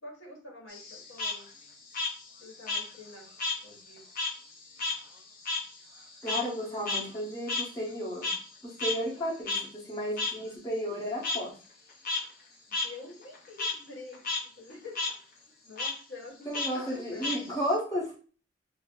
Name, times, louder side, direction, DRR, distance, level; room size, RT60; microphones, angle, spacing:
voice 1, 0.0-1.5 2.4-3.3 3.6-4.1 12.7-15.0 15.6-17.3, left 2 dB, 85° left, -2 dB, 1.1 m, -47 dB
Frog, 0.7-3.6 3.9-8.5 8.8-8.9 9.5-9.6 10.2-10.3 11.2-11.4 11.9-12.2 12.7-12.9 13.2-13.7 14.1-14.4 14.7-15.1 15.8-15.9 16.5-17.8, left 3 dB, 45° left, 0.6 m, -32 dB
voice 2, 6.2-8.3 8.6-11.6 16.5-18.1, equal, 15° left, -6 dB, 1.0 m, -33 dB
2.6 x 2.1 x 3.6 m, 0.38 s
head